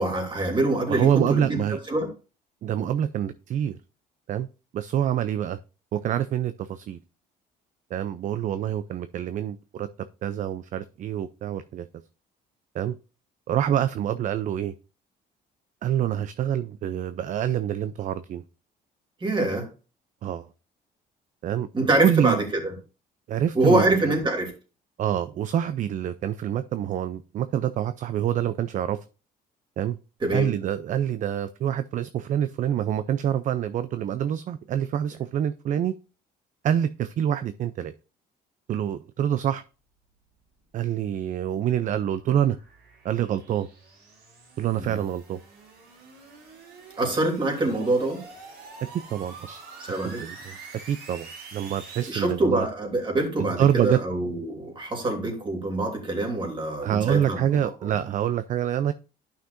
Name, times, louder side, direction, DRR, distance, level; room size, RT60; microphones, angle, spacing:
voice 1, 0.0-2.1 19.2-19.7 21.7-22.7 23.5-24.5 30.2-30.5 44.7-45.0 47.0-48.2 49.8-50.2 52.1-57.6, right 2 dB, 30° right, 3.0 m, -25 dB
voice 2, 0.9-1.8 2.6-3.8 4.3-4.5 4.7-5.6 5.9-7.0 7.9-9.9 10.2-11.9 12.7-13.0 13.5-14.7 15.8-18.4 20.2-20.5 21.4-21.7 22.0-22.4 23.3-24.1 25.0-29.0 29.8-30.0 30.3-35.9 36.6-37.9 38.7-39.6 40.7-42.6 43.0-43.7 44.6-45.4 48.9-49.6 50.0-50.6 50.9-52.7 53.4-54.0 56.8-58.9, right 10 dB, 50° right, 0.5 m, -26 dB
sound 1, 41.8-52.1, right 4 dB, 90° right, 3.5 m, -46 dB
11.5 x 5.8 x 2.6 m
cardioid pair, 110°, 17 cm